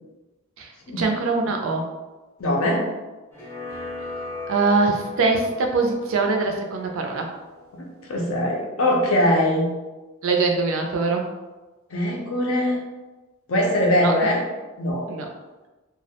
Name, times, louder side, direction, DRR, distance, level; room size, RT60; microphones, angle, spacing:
voice 1, 1.0-1.9 4.5-7.3 10.2-11.2 14.0-14.1 15.1-15.3, right 3 dB, 65° right, 2 dB, 0.4 m, -22 dB
voice 2, 2.4-2.8 7.7-9.7 11.9-12.8 13.5-14.4 14.8-15.1, left 1 dB, 70° left, -1 dB, 0.5 m, -22 dB
sound 1, 3.3-8.4, left 2 dB, 10° left, 0.5 m, -38 dB
2.3 x 2.0 x 2.8 m, 1.2 s
head